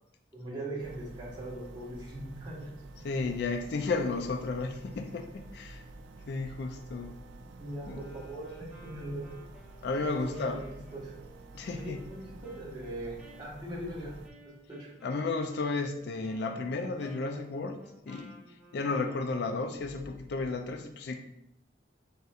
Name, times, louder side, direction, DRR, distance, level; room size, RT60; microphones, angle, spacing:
voice 1, 0.3-2.7 7.6-9.3 10.2-11.1 11.8-14.1 14.7-14.9, right 1 dB, 25° right, -6 dB, 1.3 m, -40 dB
sound 1, 0.8-14.3, right 2 dB, 90° right, 0.4 m, -49 dB
voice 2, 3.0-5.8 6.3-7.2 7.9-8.1 9.8-10.6 11.5-12.0 15.0-18.4 18.7-21.2, left 3 dB, 65° left, 5 dB, 0.4 m, -33 dB
Wind instrument woodwind instrument, 7.8-19.6, right 1 dB, 5° right, 0.9 m, -55 dB
4.1 x 4.0 x 2.4 m, 0.79 s
head